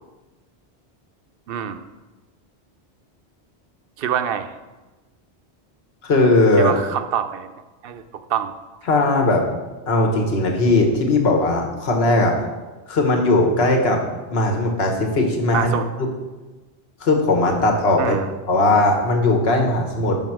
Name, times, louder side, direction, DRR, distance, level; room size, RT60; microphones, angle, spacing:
voice 1, 1.5-1.8 4.0-4.5 6.6-7.5 7.8-8.5 15.5-15.9 18.0-18.3, right 9 dB, 65° right, 9 dB, 0.7 m, -25 dB
voice 2, 6.0-6.8 8.9-9.5 9.9-12.4 12.9-14.0 14.3-15.7 17.0-18.2 18.5-20.2, left 2 dB, 70° left, 2 dB, 1.4 m, -18 dB
5.6 x 5.4 x 5.9 m, 1.2 s
omnidirectional pair, 1.1 m